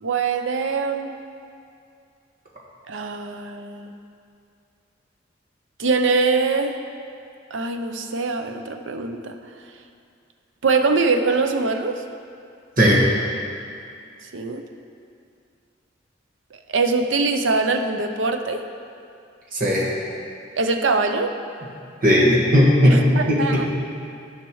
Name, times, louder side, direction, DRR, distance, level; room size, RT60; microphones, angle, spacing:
voice 1, 0.0-1.1 2.9-3.9 5.8-6.8 7.5-9.3 10.6-12.0 14.3-14.6 16.7-18.6 20.6-21.3 22.8-23.7, right 4 dB, 80° right, 5 dB, 0.6 m, -23 dB
voice 2, 19.5-19.9 22.0-23.0 23.5-23.7, equal, 50° right, -4 dB, 1.7 m, -16 dB
14.0 x 5.8 x 3.1 m, 2.5 s
head